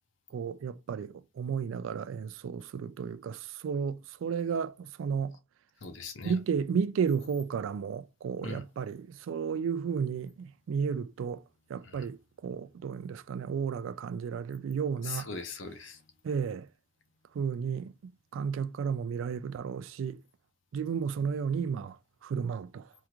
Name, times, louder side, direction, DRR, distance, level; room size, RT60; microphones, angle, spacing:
voice 1, 0.3-5.4 6.2-11.4 11.7-15.3 16.2-16.7 17.3-20.2 20.7-22.0 22.2-22.9, right 6 dB, 70° right, 0.3 m, -33 dB
voice 2, 5.8-6.4 8.4-8.6 11.8-12.1 14.5-14.7 15.0-16.0, left 4 dB, 65° left, 0.7 m, -40 dB
3.5 x 2.4 x 2.9 m
head